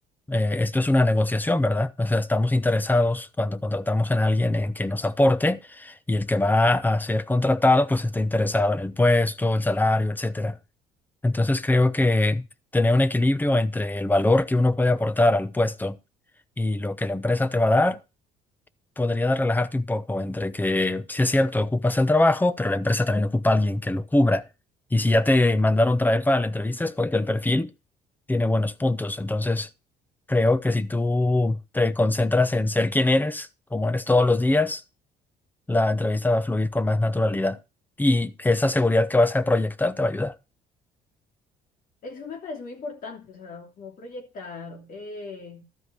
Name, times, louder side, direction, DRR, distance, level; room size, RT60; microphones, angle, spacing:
voice 1, 0.3-10.6 11.2-12.4 12.7-16.0 16.6-18.0 19.0-24.5 24.9-27.7 28.3-29.7 30.3-34.8 35.7-37.6 38.0-40.3, left 2 dB, 10° left, 0.8 m, -22 dB
voice 2, 42.0-45.6, left 3 dB, 55° left, 3.1 m, -38 dB
13.0 x 5.0 x 6.7 m
cardioid pair, 110°, 17 cm